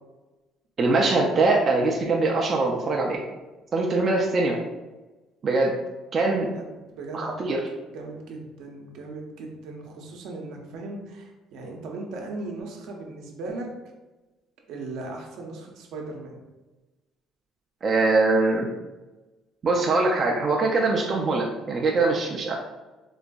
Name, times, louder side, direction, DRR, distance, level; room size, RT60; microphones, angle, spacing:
voice 1, 0.8-3.2 3.7-4.6 5.4-5.7 6.1-6.5 7.1-7.6 17.8-18.7 19.6-22.5, right 3 dB, 30° right, -1 dB, 0.3 m, -22 dB
voice 2, 6.4-7.3 7.9-13.7 14.7-16.4, right 2 dB, 70° right, 1 dB, 0.6 m, -38 dB
3.8 x 2.5 x 2.2 m, 1.1 s
cardioid pair, 150°, 0 cm